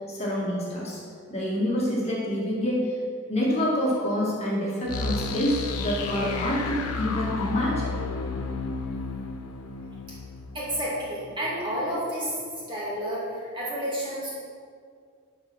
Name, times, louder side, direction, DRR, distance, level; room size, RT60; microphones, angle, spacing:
voice 1, 0.1-1.0 1.3-3.0 3.3-7.9, equal, 30° left, -6 dB, 1.9 m, -27 dB
sound 1, 4.9-11.7, left 4 dB, 85° left, 0.8 m, -32 dB
voice 2, 10.5-12.3 12.7-14.3, equal, 20° right, -7 dB, 2.6 m, -30 dB
11.0 x 4.9 x 6.1 m, 2.2 s
head